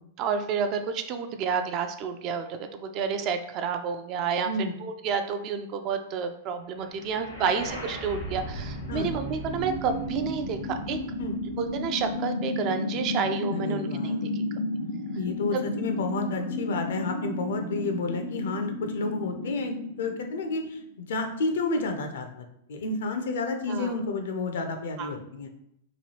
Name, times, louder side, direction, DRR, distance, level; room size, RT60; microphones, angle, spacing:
voice 1, 0.2-4.5 4.8-11.0 11.6-14.3 15.5-15.6 23.7-23.9 25.0-25.1, right 6 dB, 40° right, 7 dB, 0.3 m, -30 dB
sound 1, 6.9-20.9, left 1 dB, 85° left, 0.9 m, -33 dB
voice 2, 13.5-14.6 15.2-25.5, left 3 dB, 70° left, 5 dB, 0.5 m, -31 dB
3.0 x 2.3 x 2.8 m, 0.75 s
hypercardioid pair, 100°, 0 cm